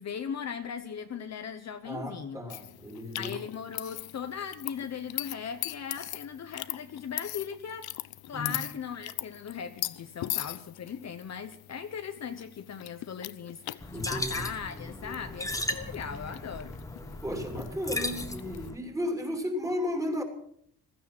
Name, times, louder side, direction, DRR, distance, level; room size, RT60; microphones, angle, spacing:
voice 1, 0.0-2.4 3.1-8.0 8.3-16.8, left 7 dB, 45° left, 8 dB, 1.0 m, -38 dB
voice 2, 1.8-3.4 8.3-8.6 13.9-14.4 17.2-20.2, left 1 dB, 10° right, 3 dB, 3.0 m, -34 dB
sound 1, 2.5-18.7, left 15 dB, 75° left, 0.7 m, -41 dB
sound 2, 13.8-18.8, left 1 dB, 10° left, 1.3 m, -36 dB
16.0 x 14.0 x 6.0 m, 0.67 s
cardioid pair, 135°, 37 cm